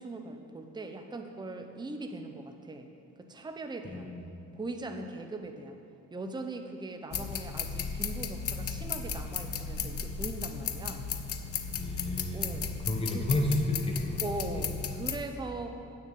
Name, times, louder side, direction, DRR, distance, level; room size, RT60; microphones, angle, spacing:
voice 1, 0.0-2.9 3.2-4.1 4.6-5.8 6.1-11.1 12.3-12.7 13.1-13.3 14.2-16.0, right 2 dB, 15° right, 5 dB, 0.8 m, -40 dB
voice 2, 3.8-4.2 11.8-14.2 14.5-14.7, left 2 dB, 20° left, 1 dB, 1.3 m, -31 dB
sound 1, 7.1-15.2, left 6 dB, 50° left, 0.7 m, -35 dB
8.6 x 6.7 x 8.5 m, 2.7 s
cardioid pair, 90°, 30 cm